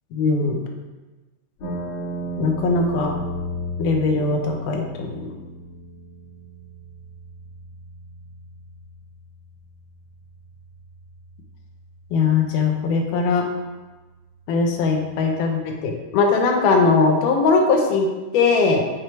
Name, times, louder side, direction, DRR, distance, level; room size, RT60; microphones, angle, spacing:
voice 1, 0.1-0.6 2.4-3.1 3.8-5.4 12.1-13.4 14.5-18.9, left 4 dB, 85° left, 2 dB, 2.3 m, -20 dB
sound 1, 1.6-15.6, right 1 dB, 60° left, 1.9 m, -36 dB
6.4 x 4.5 x 4.5 m, 1.2 s
omnidirectional pair, 3.6 m